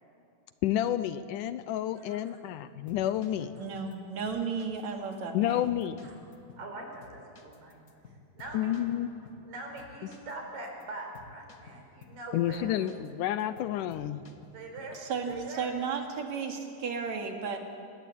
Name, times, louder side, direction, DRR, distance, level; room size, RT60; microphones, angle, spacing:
voice 1, 0.6-3.5 5.3-6.0 8.5-9.1 12.3-14.2, left 12 dB, 75° left, 13 dB, 2.1 m, -30 dB
voice 2, 2.0-2.4 4.9-5.0 6.0-6.2 6.6-7.8 8.1-9.0 9.4-13.0 14.5-15.0 15.3-15.7, right 2 dB, 75° right, 2 dB, 6.1 m, -43 dB
sound 1, 2.7-4.0 4.3-4.8 5.1-5.2 5.6-6.7 7.0-9.5 9.8-10.3 10.6-10.8 11.1-12.2 12.5-13.1 13.4-15.0 15.3-15.6, left 4 dB, 35° left, 1.4 m, -53 dB
voice 3, 3.6-5.8 14.9-17.6, right 5 dB, 55° right, 4 dB, 3.5 m, -34 dB
28.5 x 20.0 x 8.7 m, 2.7 s
omnidirectional pair, 3.9 m